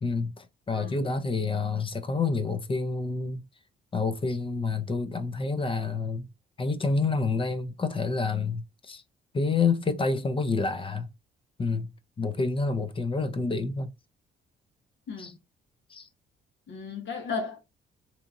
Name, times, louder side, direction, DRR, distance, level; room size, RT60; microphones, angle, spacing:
voice 1, 0.0-3.4 3.9-6.3 6.6-9.0 9.3-11.1 11.6-11.9 12.2-13.9 15.2-15.3 15.9-16.1, left 4 dB, 25° left, 0.5 m, -28 dB
voice 2, 0.7-1.0 15.1-15.3 16.7-17.6, left 4 dB, 70° left, 1.1 m, -35 dB
2.8 x 2.5 x 2.5 m
cardioid pair, 90°, 20 cm